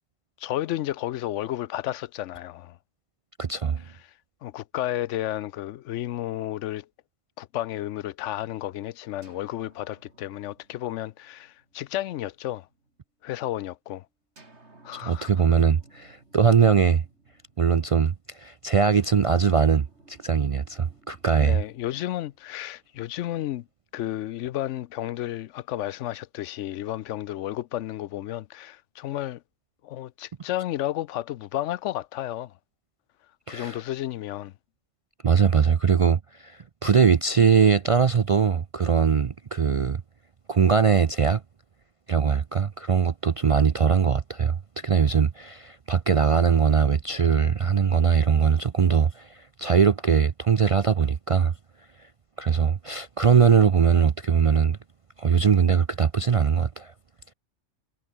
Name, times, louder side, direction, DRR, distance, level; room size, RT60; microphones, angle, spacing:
voice 1, 0.4-2.8 4.1-4.2 4.4-6.9 7.4-12.7 13.2-14.1 14.8-15.3 21.4-23.7 23.9-29.4 29.8-32.5 33.5-34.5, left 13 dB, 85° left, 0.9 m, -32 dB
voice 2, 3.4-3.8 15.0-17.0 17.6-21.6 33.5-33.8 35.2-40.0 40.5-41.4 42.1-51.5 52.4-54.8 55.2-56.9, right 6 dB, 50° right, 0.4 m, -21 dB
sound 1, 9.2-13.0 14.4-17.9 18.9-23.1, right 2 dB, 70° right, 4.1 m, -57 dB
omnidirectional pair, 1.2 m